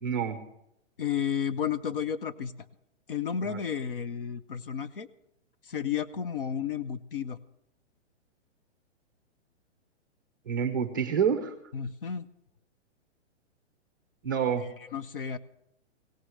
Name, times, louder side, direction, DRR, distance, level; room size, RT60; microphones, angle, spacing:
voice 1, 0.0-0.4 3.4-3.6 10.5-11.5 14.2-14.7, right 7 dB, 15° right, 8 dB, 0.6 m, -28 dB
voice 2, 1.0-2.5 3.1-5.1 5.6-7.4 11.7-12.3 14.6-15.4, left 8 dB, 50° left, 13 dB, 0.7 m, -32 dB
17.0 x 9.9 x 6.2 m, 0.79 s
hypercardioid pair, 180°, 36 cm